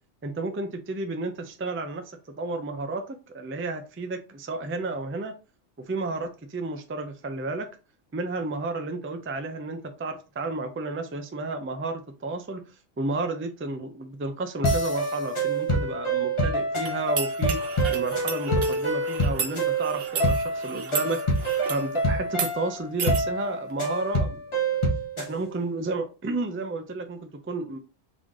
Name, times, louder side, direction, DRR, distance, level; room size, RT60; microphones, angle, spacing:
voice 1, 0.2-5.3 5.9-7.7 8.1-17.6 17.9-21.4 21.7-24.8 25.2-27.8, right 2 dB, 20° right, 0.3 m, -32 dB
sound 1, 14.6-25.3, right 1 dB, 30° left, 0.9 m, -26 dB
sound 2, 16.8-21.9 22.3-22.5 23.0-23.2, right 6 dB, 60° right, 1.0 m, -34 dB
4.0 x 3.2 x 3.7 m
omnidirectional pair, 1.2 m